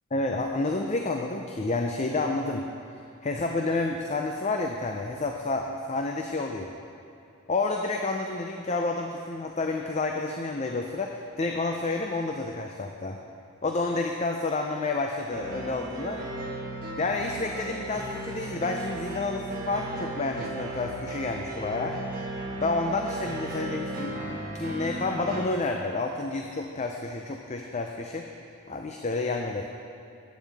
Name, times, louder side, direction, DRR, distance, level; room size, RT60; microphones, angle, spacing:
voice 1, 0.1-2.6 3.2-6.6 7.5-13.2 13.6-16.2 17.0-22.0 22.6-28.3 28.7-29.6, left 3 dB, 30° left, 3 dB, 0.4 m, -29 dB
sound 1, 15.3-25.4, right 2 dB, 40° right, 1.2 m, -36 dB
14.5 x 9.2 x 3.5 m, 2.8 s
head